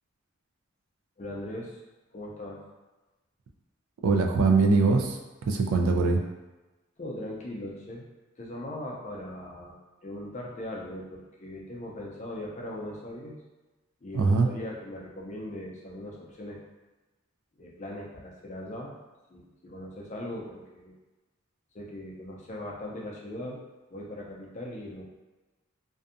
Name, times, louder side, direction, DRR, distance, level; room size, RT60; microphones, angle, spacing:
voice 1, 1.2-1.8 2.1-2.6 7.0-8.0 8.4-13.4 14.0-16.6 17.6-18.9 19.3-20.9 21.7-23.6 23.9-25.0, left 1 dB, 35° left, -3 dB, 0.4 m, -39 dB
voice 2, 4.0-5.2 5.5-6.2 14.1-14.5, right 4 dB, 90° right, 3 dB, 0.3 m, -22 dB
2.6 x 2.2 x 2.5 m, 1.1 s
head